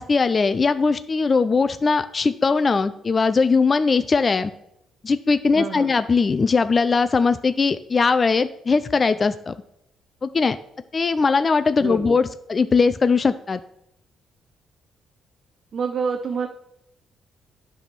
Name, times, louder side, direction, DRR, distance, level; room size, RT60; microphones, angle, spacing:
voice 1, 0.0-4.5 5.0-9.5 10.2-10.6 10.9-13.6, left 4 dB, 35° left, 11 dB, 0.4 m, -20 dB
voice 2, 5.5-5.9 11.8-12.2 15.7-16.5, right 5 dB, 55° right, 6 dB, 0.6 m, -28 dB
9.7 x 3.5 x 5.9 m, 0.79 s
cardioid pair, 90°, 0 cm